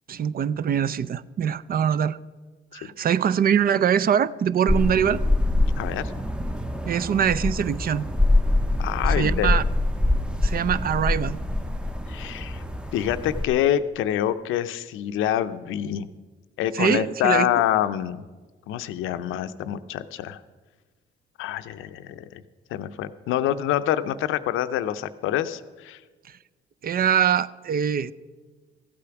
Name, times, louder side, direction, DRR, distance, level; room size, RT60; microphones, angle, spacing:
voice 1, 0.1-2.2 2.7-5.2 6.9-8.1 9.1-9.6 10.4-11.4 16.7-17.5 26.8-28.1, right 8 dB, 50° right, 17 dB, 0.4 m, -23 dB
sound 1, 4.7-13.4, left 2 dB, 5° right, 0.7 m, -24 dB
voice 2, 5.8-6.1 8.8-9.5 12.1-12.6 12.9-16.1 16.6-18.2 18.7-20.4 21.4-22.4 22.7-26.0, left 11 dB, 90° left, 12 dB, 0.6 m, -26 dB
15.0 x 8.5 x 5.9 m, 1.3 s
cardioid pair, 90°, 20 cm